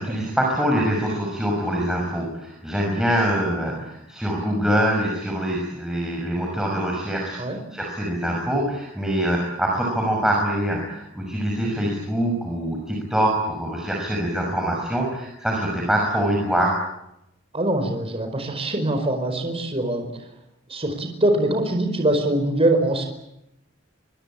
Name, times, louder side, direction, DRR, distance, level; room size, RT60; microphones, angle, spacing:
voice 1, 0.0-7.4 7.7-16.8, right 1 dB, 5° right, -1 dB, 6.0 m, -24 dB
voice 2, 17.5-20.2 20.7-23.0, right 1 dB, 30° right, 5 dB, 4.9 m, -23 dB
24.5 x 24.0 x 8.8 m, 0.85 s
head